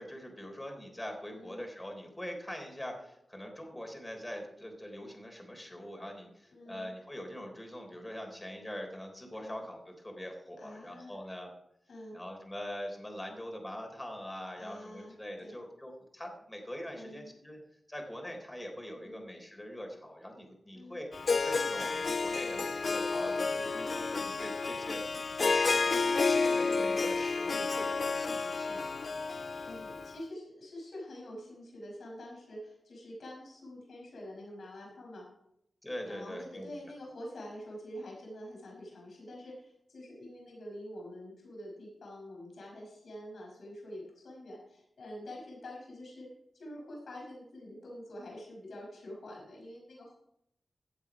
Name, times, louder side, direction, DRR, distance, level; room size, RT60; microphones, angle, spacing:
voice 1, 0.0-11.5 12.1-17.6 17.9-21.1 21.4-29.1 35.8-36.7, equal, 15° left, 2 dB, 3.6 m, -43 dB
voice 2, 1.3-1.7 6.5-6.9 9.4-9.6 10.6-11.2 11.9-12.2 14.6-15.6 16.9-17.4 19.0-19.3 20.7-21.0 23.7-23.9 26.6-27.0 29.6-35.2 36.0-46.3 46.5-50.2, equal, 85° left, -2 dB, 5.3 m, -46 dB
Harp, 21.1-30.1, left 4 dB, 60° left, 0.4 m, -31 dB
16.0 x 8.1 x 4.9 m, 0.77 s
cardioid pair, 65°, 0 cm